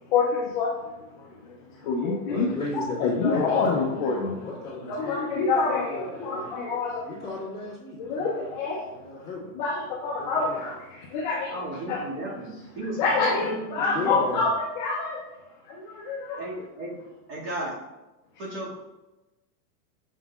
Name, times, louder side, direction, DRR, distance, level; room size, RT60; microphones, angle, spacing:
voice 1, 0.1-0.8 1.2-1.3 1.8-2.5 3.0-4.4 4.9-7.1 8.0-8.8 9.6-11.5 11.9-12.0 13.0-15.2 15.7-16.4, left 4 dB, 30° left, -2 dB, 0.5 m, -26 dB
voice 2, 2.3-6.5 7.0-8.5 8.9-9.5 10.1-10.6 13.7-14.5, left 2 dB, 10° left, -10 dB, 2.0 m, -36 dB
voice 3, 11.5-14.2 16.4-17.0 17.3-17.8 18.4-18.8, right 1 dB, 35° right, -5 dB, 2.1 m, -34 dB
7.1 x 5.5 x 2.4 m, 1.0 s
supercardioid pair, 165°, 49 cm